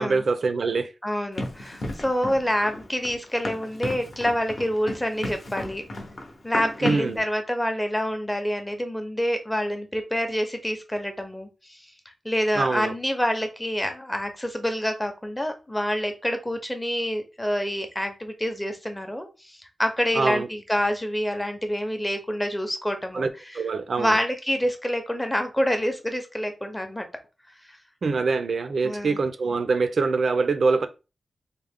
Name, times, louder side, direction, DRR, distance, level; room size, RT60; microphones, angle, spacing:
voice 1, 0.0-0.9 6.8-7.2 12.6-12.9 20.1-20.5 23.1-23.3 23.5-24.2 28.0-30.9, right 4 dB, 60° right, 0.4 m, -24 dB
voice 2, 1.0-5.8 6.4-11.9 12.2-23.6 24.0-27.1 28.8-29.2, equal, 10° left, 0.6 m, -27 dB
Run, 1.4-7.2, left 1 dB, 50° left, 0.8 m, -34 dB
3.6 x 2.1 x 3.4 m
wide cardioid pair, 135°, 0 cm